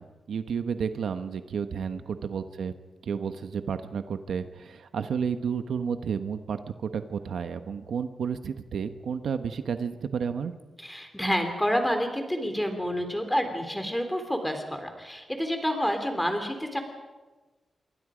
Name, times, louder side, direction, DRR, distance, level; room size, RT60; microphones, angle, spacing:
voice 1, 0.0-2.7 3.1-10.5, right 6 dB, 85° right, 9 dB, 1.1 m, -31 dB
voice 2, 10.8-16.8, equal, 5° left, 5 dB, 3.3 m, -28 dB
26.5 x 23.0 x 5.1 m, 1.2 s
wide cardioid pair, 135°, 0 cm